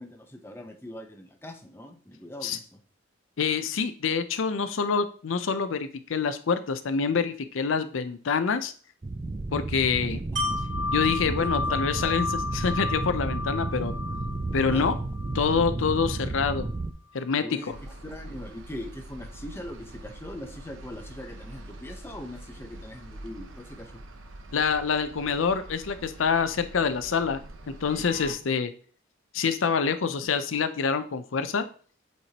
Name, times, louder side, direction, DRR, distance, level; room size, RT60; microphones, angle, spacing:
voice 1, 0.0-2.8 11.2-12.2 14.7-15.0 17.4-24.0, left 1 dB, 10° left, 4 dB, 0.7 m, -41 dB
voice 2, 3.4-8.7 9.5-10.2 10.9-12.3 12.5-13.9 14.5-14.9 15.3-16.7 17.1-17.8 24.5-27.4 27.8-28.7 29.3-31.6, left 5 dB, 85° left, 10 dB, 0.5 m, -26 dB
sound 1, 9.0-16.9, right 2 dB, 25° right, 0.3 m, -32 dB
Wind chime, 10.4-16.2 16.6-16.7, left 3 dB, 60° right, 2.3 m, -33 dB
sound 2, 17.7-28.3, right 1 dB, 80° right, 0.8 m, -44 dB
8.0 x 4.4 x 2.9 m, 0.42 s
head